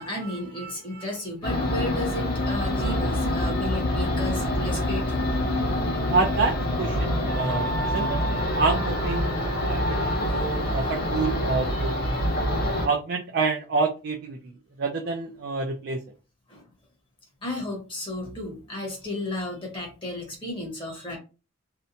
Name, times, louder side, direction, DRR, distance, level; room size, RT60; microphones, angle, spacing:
voice 1, 0.0-5.3 7.1-7.2 10.5-10.9 11.7-12.4 12.7-12.8 16.5-16.6 17.4-21.2, left 1 dB, 25° left, -1 dB, 0.9 m, -34 dB
sound 1, 1.4-12.9, left 1 dB, 50° left, 0.7 m, -26 dB
voice 2, 6.1-8.2 8.5-12.0 12.8-14.4 14.8-16.0, right 4 dB, 50° right, 2 dB, 0.4 m, -27 dB
Wind instrument woodwind instrument, 7.3-11.1, right 1 dB, 80° right, 0.8 m, -35 dB
2.7 x 2.1 x 2.6 m, 0.31 s
head